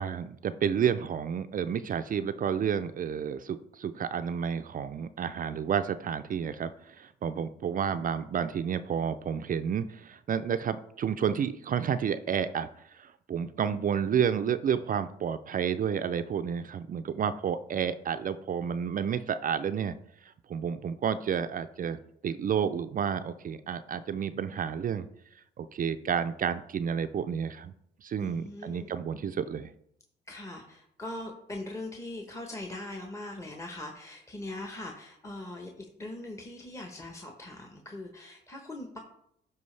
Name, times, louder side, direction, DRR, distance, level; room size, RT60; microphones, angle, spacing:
voice 1, 0.0-19.9 20.5-25.1 25.6-27.7 28.0-29.7, right 7 dB, 45° right, 11 dB, 0.4 m, -30 dB
voice 2, 28.2-29.0 30.3-39.0, left 2 dB, 15° left, 3 dB, 1.0 m, -41 dB
12.5 x 4.7 x 3.3 m, 0.73 s
cardioid pair, 90°, 20 cm